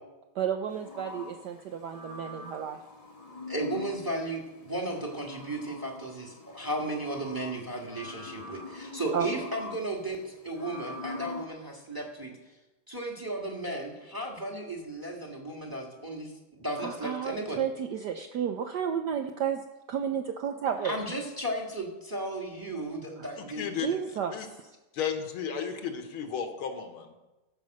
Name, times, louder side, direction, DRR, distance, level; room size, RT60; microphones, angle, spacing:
voice 1, 0.3-2.8 9.1-9.3 16.8-19.6 19.9-21.0 23.2-23.3 23.8-24.7, right 8 dB, 70° right, 5 dB, 1.0 m, -32 dB
sound 1, 0.7-11.5, left 3 dB, 30° left, 0.7 m, -44 dB
voice 2, 3.5-12.3 12.9-16.3 16.6-17.6 20.8-24.0, right 1 dB, 10° right, 1 dB, 1.3 m, -35 dB
voice 3, 23.4-23.9 24.3-24.5 24.9-27.2, left 7 dB, 75° left, 5 dB, 1.9 m, -34 dB
14.5 x 5.4 x 6.5 m, 1.1 s
omnidirectional pair, 2.4 m